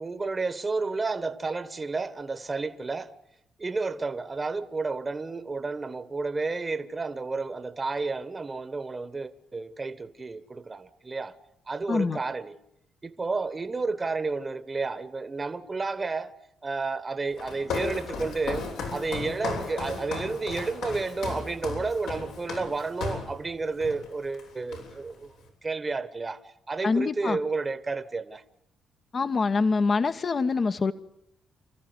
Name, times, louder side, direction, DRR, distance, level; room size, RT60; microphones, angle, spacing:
voice 1, 0.0-3.1 3.6-11.4 11.7-12.6 13.0-16.3 16.6-25.3 25.6-28.4, right 3 dB, 25° right, 1.3 m, -31 dB
voice 2, 11.9-12.2 26.8-27.4 29.1-30.9, left 4 dB, 40° left, 1.1 m, -25 dB
Walk footsteps, 17.4-23.3 23.8-24.1 24.3-25.2, left 4 dB, 90° left, 7.5 m, -35 dB
29.5 x 14.5 x 9.7 m
cardioid pair, 90°, 0 cm